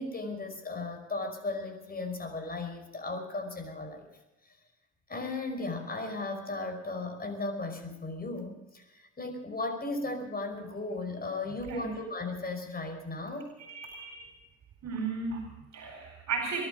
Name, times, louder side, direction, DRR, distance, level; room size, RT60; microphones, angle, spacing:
voice 1, 0.0-4.1 4.4-4.6 5.1-13.5, left 2 dB, 30° left, 6 dB, 5.4 m, -36 dB
voice 2, 11.7-12.0 13.7-14.3 14.8-16.6, right 4 dB, 60° right, 2 dB, 4.3 m, -35 dB
23.0 x 12.0 x 5.2 m, 0.98 s
cardioid pair, 90°, 30 cm